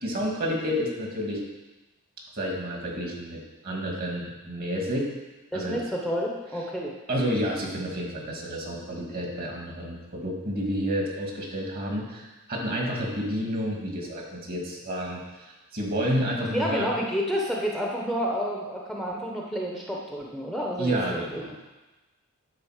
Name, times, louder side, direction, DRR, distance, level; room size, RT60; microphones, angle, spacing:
voice 1, 0.0-1.4 2.3-5.1 5.5-5.8 7.1-16.9 20.8-21.5, equal, 45° right, -1 dB, 1.9 m, -30 dB
voice 2, 5.5-6.9 16.4-21.6, equal, ahead, -3 dB, 0.8 m, -30 dB
10.0 x 4.0 x 6.4 m, 1.1 s
head